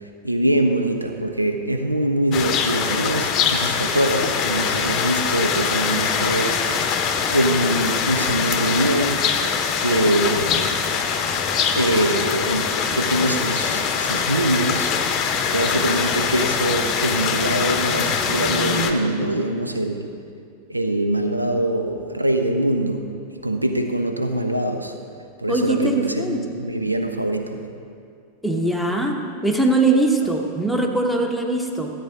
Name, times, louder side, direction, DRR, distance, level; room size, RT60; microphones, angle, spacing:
voice 1, 0.2-6.6 7.3-9.2 9.8-10.8 11.8-14.9 15.5-20.1 20.7-23.1 23.4-24.9 25.4-27.6, right 1 dB, 85° right, 6 dB, 0.6 m, -23 dB
sound 1, 2.3-18.9, left 6 dB, 35° left, 0.8 m, -23 dB
voice 2, 25.5-26.4 28.4-29.2 29.4-31.9, right 2 dB, ahead, 1 dB, 1.0 m, -21 dB
13.5 x 8.4 x 3.9 m, 2.4 s
figure-of-eight pair, 90°, 0 cm